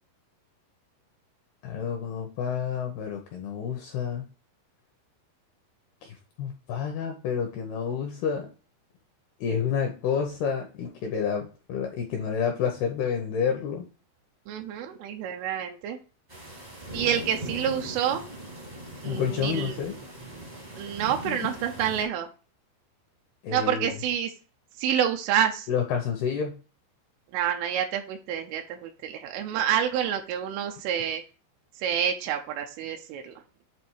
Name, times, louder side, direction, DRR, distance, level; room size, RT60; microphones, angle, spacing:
voice 1, 1.6-4.2 6.0-8.5 9.4-13.9 19.0-20.0 21.2-21.5 23.4-23.9 25.7-26.6, left 7 dB, 80° left, 3 dB, 2.3 m, -29 dB
voice 2, 14.5-16.0 16.9-18.2 19.0-19.8 20.7-22.3 23.5-24.3 24.8-25.7 27.3-31.2 31.8-33.4, right 9 dB, 85° right, 4 dB, 3.1 m, -28 dB
sound 1, 16.3-22.0, right 1 dB, 45° right, 0.5 m, -40 dB
8.6 x 3.1 x 4.6 m, 0.35 s
omnidirectional pair, 5.6 m